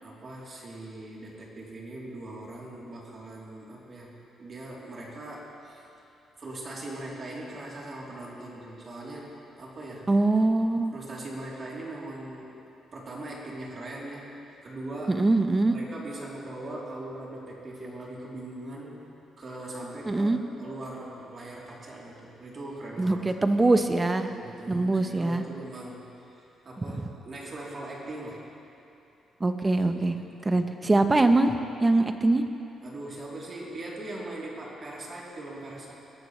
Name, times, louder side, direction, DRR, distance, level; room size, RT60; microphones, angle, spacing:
voice 1, 0.0-5.8 6.4-10.1 10.9-12.6 12.9-14.3 14.6-15.3 15.7-19.1 19.4-23.4 24.3-28.5 30.1-30.6 32.8-35.9, right 1 dB, 40° right, -4 dB, 3.3 m, -40 dB
voice 2, 10.1-10.9 15.1-15.8 20.1-20.4 23.0-24.3 24.7-25.4 29.4-30.1 30.4-32.4, right 2 dB, 20° right, 7 dB, 0.9 m, -23 dB
21.0 x 13.0 x 3.2 m, 2.8 s
cardioid pair, 90°, 0 cm